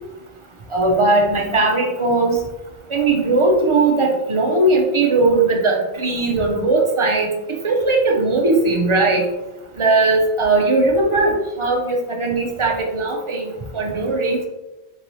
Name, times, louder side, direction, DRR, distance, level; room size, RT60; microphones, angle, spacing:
voice 1, 0.7-2.4 2.9-7.3 7.6-9.2 9.8-14.5, right 2 dB, 45° right, 0 dB, 0.4 m, -18 dB
3.7 x 2.7 x 3.0 m, 1.0 s
omnidirectional pair, 1.1 m